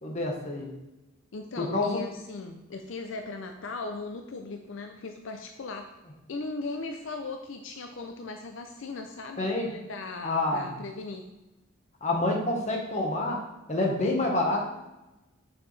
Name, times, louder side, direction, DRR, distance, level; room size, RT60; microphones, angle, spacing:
voice 1, 0.0-0.7 1.6-2.0 9.4-9.7 10.2-10.7 12.0-13.4 13.7-14.6, left 2 dB, 35° left, 0 dB, 1.3 m, -27 dB
voice 2, 1.3-5.9 6.3-11.2, left 3 dB, 70° left, 4 dB, 0.6 m, -38 dB
6.9 x 6.4 x 3.3 m, 0.98 s
head